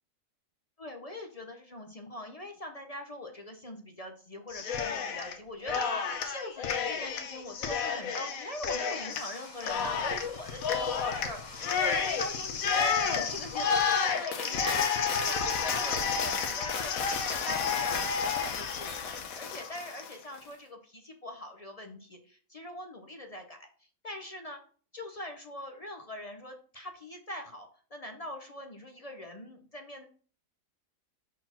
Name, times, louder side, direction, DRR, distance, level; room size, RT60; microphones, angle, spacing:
voice 1, 0.8-24.6 24.9-30.0, left 1 dB, 40° left, 4 dB, 0.6 m, -42 dB
Cheering, 4.5-5.4 5.7-20.1, left 6 dB, 85° left, 1.2 m, -31 dB
sound 1, 9.1-14.2, left 2 dB, 65° left, 2.2 m, -51 dB
4.5 x 4.1 x 5.7 m, 0.43 s
omnidirectional pair, 1.4 m